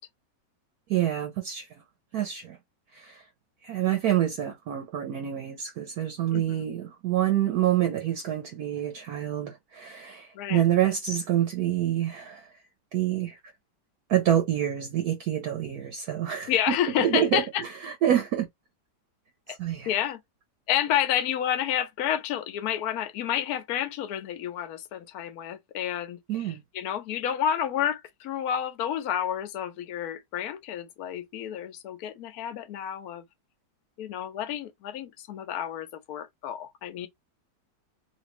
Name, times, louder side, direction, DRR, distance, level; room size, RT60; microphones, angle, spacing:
voice 1, 0.9-1.7 2.1-2.6 2.9-3.2 3.6-12.6 12.9-13.4 14.1-18.5 19.5-20.0 26.3-26.6, right 11 dB, 65° right, 1.0 m, -27 dB
voice 2, 6.3-6.6 10.3-10.6 16.5-17.6 19.9-20.2 20.7-26.2 26.4-33.2 34.0-37.1, left 10 dB, 65° left, 1.1 m, -30 dB
3.2 x 2.6 x 3.0 m
omnidirectional pair, 1.9 m